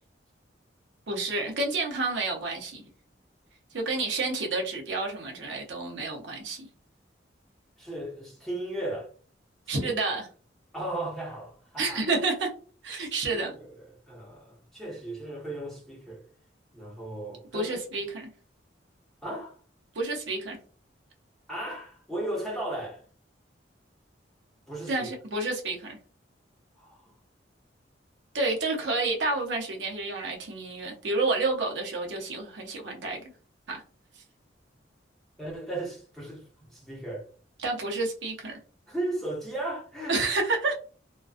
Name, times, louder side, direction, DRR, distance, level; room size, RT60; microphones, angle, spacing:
voice 1, 1.1-2.8 3.7-6.7 9.7-10.3 11.8-12.5 12.8-13.5 17.5-18.3 19.9-20.6 24.9-26.0 28.3-33.2 33.7-33.8 34.2-34.3 37.6-38.5 40.1-40.7, right 3 dB, 70° right, 0.7 m, -29 dB
voice 2, 7.8-9.1 9.8-9.9 10.7-12.0 13.0-13.7 14.1-16.2 16.7-17.8 19.2-19.6 21.5-23.0 24.7-25.1 26.8-27.1 35.4-37.3 38.9-40.2, right 1 dB, ahead, 0.9 m, -36 dB
2.4 x 2.2 x 2.4 m
head